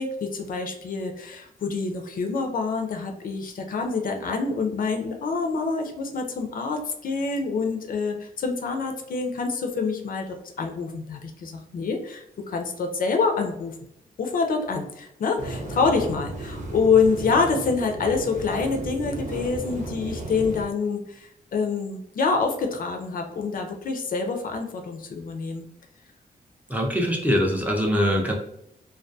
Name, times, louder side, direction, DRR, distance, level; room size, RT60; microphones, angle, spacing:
voice 1, 0.0-13.7 14.2-25.6, left 4 dB, 60° left, 4 dB, 0.4 m, -26 dB
sound 1, 15.4-20.6, right 2 dB, 55° right, 0.8 m, -34 dB
voice 2, 26.7-28.3, equal, 10° right, -1 dB, 0.4 m, -23 dB
2.2 x 2.2 x 2.6 m, 0.78 s
wide cardioid pair, 100°, 16 cm